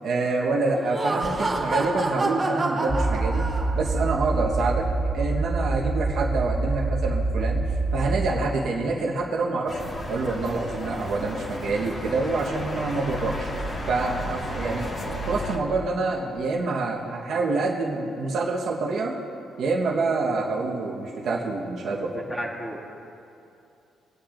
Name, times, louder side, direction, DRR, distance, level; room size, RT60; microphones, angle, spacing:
voice 1, 0.0-3.4 3.7-4.9 5.1-7.6 7.9-9.8 10.1-13.5 13.9-19.2 19.6-22.2, right 3 dB, 65° right, -3 dB, 1.2 m, -26 dB
Laughter, 0.7-4.0, right 2 dB, 25° right, 2.8 m, -28 dB
sound 1, 2.9-8.3, right 3 dB, 10° right, 1.1 m, -26 dB
sound 2, 9.7-15.6, left 1 dB, 40° left, 1.8 m, -33 dB
voice 2, 21.8-22.8, equal, 15° left, -4 dB, 2.5 m, -34 dB
25.0 x 8.6 x 2.6 m, 2.7 s
cardioid pair, 90°, 0 cm